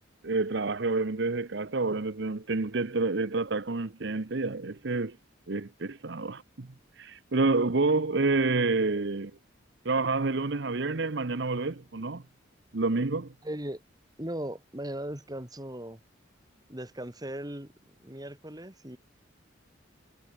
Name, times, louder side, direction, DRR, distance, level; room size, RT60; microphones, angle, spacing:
voice 1, 0.2-5.2 5.5-6.7 7.0-9.3 9.8-12.2 12.7-13.3, right 3 dB, 60° right, 0.9 m, -28 dB
voice 2, 13.4-13.8 14.2-16.0 16.7-17.7 18.0-19.0, right 1 dB, 20° right, 3.6 m, -38 dB
head